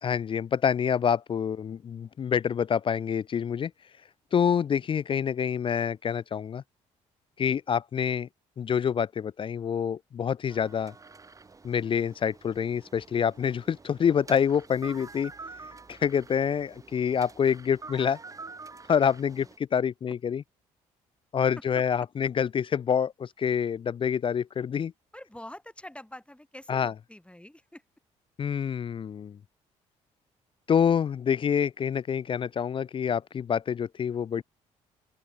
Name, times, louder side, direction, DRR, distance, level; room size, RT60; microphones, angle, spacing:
voice 1, 0.0-3.7 4.3-6.6 7.4-8.3 8.6-10.9 11.6-15.3 15.9-18.2 18.9-20.4 21.3-24.9 26.7-26.9 28.4-29.4 30.7-34.4, left 7 dB, 35° left, 0.4 m, -27 dB
voice 2, 4.5-4.8 19.2-19.5 21.4-22.3 25.1-27.8, left 1 dB, 5° left, 7.1 m, -47 dB
sound 1, 10.5-19.6, right 4 dB, 20° right, 0.7 m, -48 dB
open air
hypercardioid pair, 55°, 15 cm